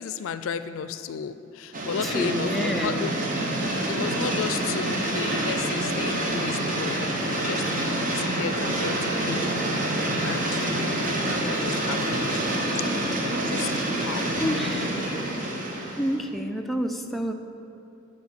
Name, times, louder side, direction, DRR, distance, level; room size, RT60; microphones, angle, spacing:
voice 1, 0.0-3.1 3.9-9.5 10.2-10.6 11.2-12.4 13.4-14.3, left 6 dB, 80° left, 12 dB, 0.4 m, -34 dB
sound 1, 1.7-16.2, right 1 dB, 40° right, 1.0 m, -27 dB
voice 2, 2.0-3.1 11.0-11.6 13.7-14.1 14.4-15.0 16.0-17.3, equal, ahead, 3 dB, 0.4 m, -29 dB
7.8 x 5.0 x 7.2 m, 2.9 s
head